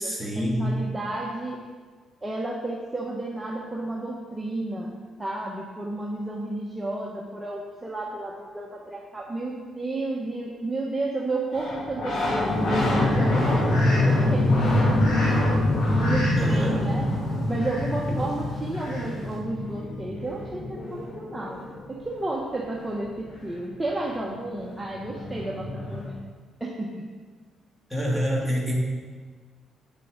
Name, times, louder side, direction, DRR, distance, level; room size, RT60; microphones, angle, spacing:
voice 1, 0.0-0.8 16.4-17.1 18.1-18.2 27.9-28.7, equal, 5° left, -3 dB, 2.5 m, -27 dB
voice 2, 0.6-1.6 2.2-14.6 15.3-17.1 17.5-26.2 26.6-27.0, right 2 dB, 15° right, -3 dB, 1.2 m, -32 dB
sound 1, 11.5-21.9 24.0-24.1 24.3-26.1, left 1 dB, 65° left, 2.6 m, -25 dB
Fowl, 12.3-19.4, left 1 dB, 80° left, 2.8 m, -38 dB
9.5 x 8.4 x 4.0 m, 1.5 s
cardioid pair, 90°, 0 cm